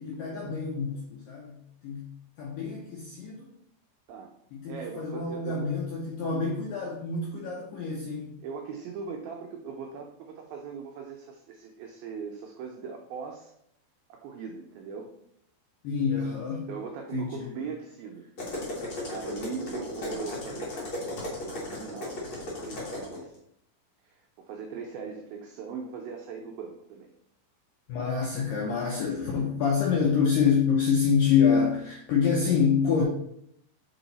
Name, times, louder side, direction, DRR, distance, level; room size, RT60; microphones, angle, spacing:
voice 1, 0.0-2.1 2.4-3.5 4.5-8.3 15.8-16.7 17.1-17.6 27.9-33.0, left 6 dB, 85° left, -2 dB, 2.0 m, -27 dB
voice 2, 4.7-5.7 8.4-13.5 14.1-15.1 16.7-18.3 19.0-23.3 24.0-27.1, right 5 dB, 90° right, 2 dB, 2.1 m, -40 dB
sound 1, 18.4-23.2, left 1 dB, 65° left, 1.2 m, -36 dB
6.3 x 3.9 x 4.0 m, 0.72 s
omnidirectional pair, 4.9 m